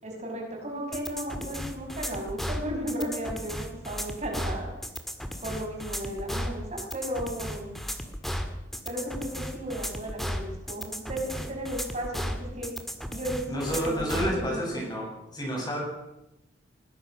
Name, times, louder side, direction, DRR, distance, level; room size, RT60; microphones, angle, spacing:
voice 1, 0.0-4.7 5.4-7.7 8.8-12.7 13.1-14.8, equal, 40° right, 0 dB, 6.0 m, -35 dB
sound 1, 0.9-14.4, equal, ahead, 1.9 m, -35 dB
voice 2, 13.5-15.1 15.3-15.8, equal, 25° left, -1 dB, 7.6 m, -30 dB
21.0 x 19.0 x 6.4 m, 0.92 s
head